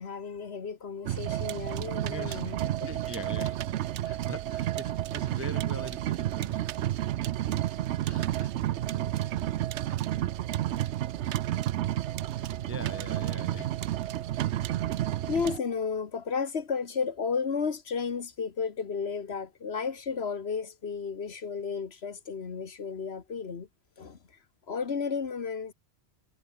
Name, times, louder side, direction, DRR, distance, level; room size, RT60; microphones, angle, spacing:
voice 1, 0.0-2.9 15.3-23.7 24.0-24.2 24.7-25.7, left 5 dB, 65° left, 1.6 m, -33 dB
sound 1, 1.1-15.6, right 13 dB, 85° right, 0.9 m, -31 dB
voice 2, 2.1-2.4 2.8-3.6 4.0-6.6 8.1-8.5 12.3-13.7, right 1 dB, 20° right, 0.4 m, -42 dB
omnidirectional pair, 1.1 m